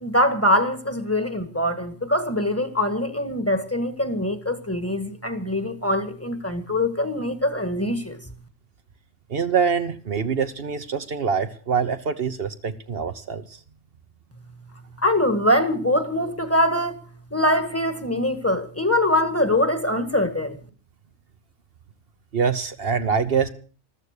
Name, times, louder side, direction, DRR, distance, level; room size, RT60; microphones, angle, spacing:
voice 1, 0.0-8.2 15.0-17.0 17.3-20.6, left 1 dB, 15° left, 1.6 m, -23 dB
voice 2, 9.3-13.4 22.3-23.5, right 6 dB, 60° right, 1.1 m, -24 dB
14.0 x 13.5 x 6.6 m
omnidirectional pair, 1.1 m